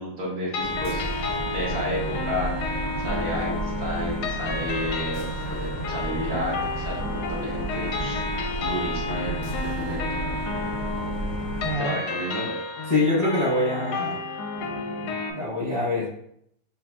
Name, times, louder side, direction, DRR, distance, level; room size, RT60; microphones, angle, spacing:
voice 1, 0.0-5.6 5.8-8.2 8.6-10.3 11.7-12.6, equal, 55° right, -4 dB, 1.4 m, -32 dB
sound 1, 0.5-15.3, left 3 dB, 70° left, 1.0 m, -31 dB
sound 2, 0.6-11.8, right 2 dB, 85° right, 0.7 m, -33 dB
voice 2, 11.6-12.0 12.9-14.2 14.6-16.1, left 2 dB, 40° left, -9 dB, 0.8 m, -26 dB
7.5 x 2.5 x 2.3 m, 0.73 s
omnidirectional pair, 2.2 m